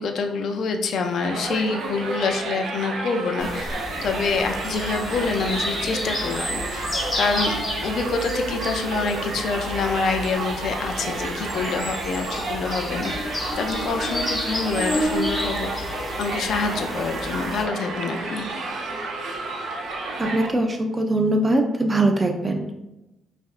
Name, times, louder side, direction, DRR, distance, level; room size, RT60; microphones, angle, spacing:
voice 1, 0.0-6.9 7.1-13.1 13.6-15.9 16.2-18.5, left 4 dB, 65° left, 5 dB, 0.5 m, -26 dB
Crowd, 1.2-20.5, right 2 dB, 75° right, 0.7 m, -31 dB
sound 1, 3.4-17.6, left 1 dB, 20° left, 1.2 m, -31 dB
voice 2, 20.2-22.7, right 2 dB, 25° right, 3 dB, 0.6 m, -21 dB
5.1 x 2.6 x 2.5 m, 0.97 s
cardioid pair, 90°, 0 cm